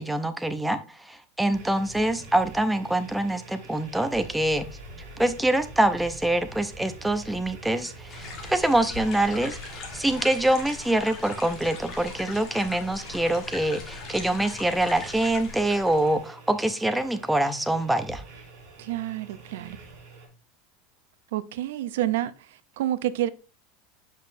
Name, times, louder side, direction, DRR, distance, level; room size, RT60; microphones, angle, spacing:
voice 1, 0.0-4.7 5.2-18.2, right 1 dB, 5° right, 0.4 m, -25 dB
sound 1, 1.5-20.3, right 3 dB, 50° right, 3.3 m, -46 dB
sound 2, 8.1-16.3, left 4 dB, 30° left, 1.5 m, -40 dB
voice 2, 18.8-19.8 21.3-22.3 22.8-23.3, right 13 dB, 85° right, 0.5 m, -28 dB
7.2 x 5.6 x 2.6 m
supercardioid pair, 170°, 0 cm